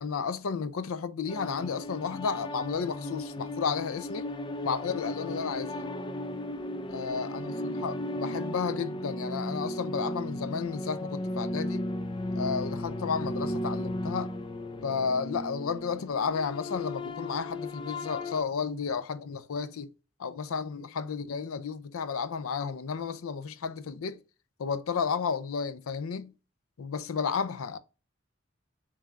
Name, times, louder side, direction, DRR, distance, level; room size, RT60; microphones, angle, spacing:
voice 1, 0.0-4.3 4.6-5.9 6.9-11.9 12.3-14.4 14.8-19.9 20.2-24.2 24.6-26.3 26.8-27.8, left 6 dB, 90° left, 0.5 m, -32 dB
sound 1, 1.3-18.4, left 1 dB, 25° left, 0.3 m, -35 dB
6.8 x 3.3 x 2.4 m
head